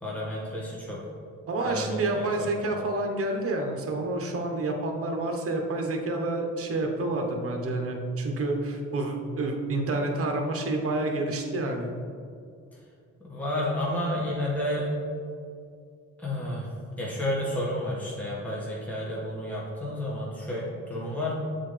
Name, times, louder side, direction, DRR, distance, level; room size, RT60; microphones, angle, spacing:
voice 1, 0.0-1.0 1.6-2.8 13.2-14.9 16.2-16.7 17.0-21.3, left 1 dB, 5° left, -6 dB, 1.5 m, -31 dB
voice 2, 1.5-11.9, right 2 dB, 50° right, 2 dB, 1.0 m, -29 dB
7.2 x 4.0 x 3.3 m, 2.3 s
cardioid pair, 90°, 30 cm